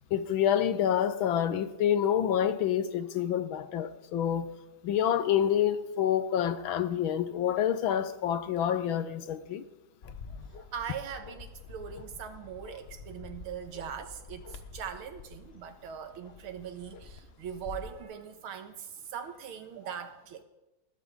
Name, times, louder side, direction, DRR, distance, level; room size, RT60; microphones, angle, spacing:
voice 1, 0.1-4.5 4.8-9.6, left 9 dB, 75° left, 1.7 m, -27 dB
Bark, 10.0-18.0, left 4 dB, 40° left, 0.9 m, -48 dB
voice 2, 10.7-20.4, right 8 dB, 85° right, 2.1 m, -41 dB
20.5 x 15.5 x 3.7 m
omnidirectional pair, 2.3 m